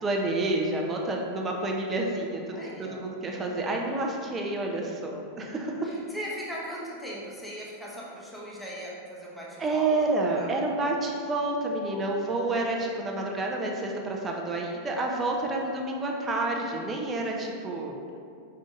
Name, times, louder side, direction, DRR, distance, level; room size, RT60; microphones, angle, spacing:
voice 1, 0.0-2.4 2.8-5.9 9.6-18.0, right 2 dB, 20° right, 0 dB, 0.9 m, -29 dB
voice 2, 2.5-3.1 5.8-10.6, equal, 5° left, -5 dB, 1.1 m, -39 dB
5.7 x 5.0 x 3.8 m, 2.4 s
figure-of-eight pair, 90°, 0 cm